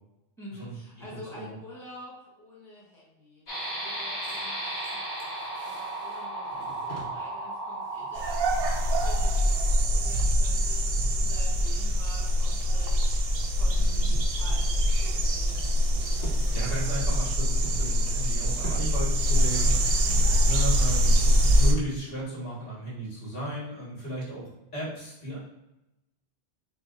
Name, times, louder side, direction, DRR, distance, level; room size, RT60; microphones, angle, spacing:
voice 1, 0.4-5.3 5.6-15.6 20.0-20.4, equal, ahead, -6 dB, 1.3 m, -48 dB
voice 2, 1.1-1.5 13.8-14.2 16.5-19.8 20.4-24.4 24.7-25.4, equal, 60° left, -7 dB, 1.8 m, -35 dB
sound 1, 3.5-9.6, right 1 dB, 40° left, 1.0 m, -35 dB
sound 2, 4.2-10.9 11.3-11.5 11.8-14.0 14.3-16.4 16.8-19.1 19.3-19.5 19.9-20.0, right 1 dB, 75° left, 1.3 m, -48 dB
sound 3, 8.1-21.7, equal, 65° right, 0.8 m, -24 dB
6.9 x 2.4 x 2.6 m, 0.94 s
omnidirectional pair, 1.1 m